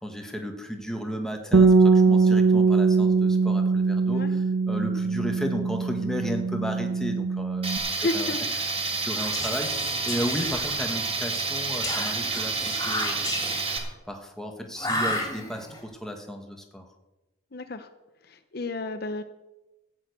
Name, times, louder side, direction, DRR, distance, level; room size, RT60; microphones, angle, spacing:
voice 1, 0.0-8.3 8.6-13.4 14.1-16.9, equal, 5° left, 3 dB, 1.3 m, -34 dB
Bass guitar, 1.5-7.8, right 4 dB, 75° right, 1.2 m, -21 dB
Tools, 7.6-13.8, right 4 dB, 30° right, 1.6 m, -29 dB
voice 2, 8.0-8.4 17.5-17.9 18.2-19.2, left 2 dB, 50° left, 9 dB, 0.8 m, -31 dB
Whispering, 9.1-11.1 11.8-13.9 14.8-15.8, left 1 dB, 20° left, 2.7 m, -33 dB
14.5 x 6.5 x 8.1 m, 1.0 s
head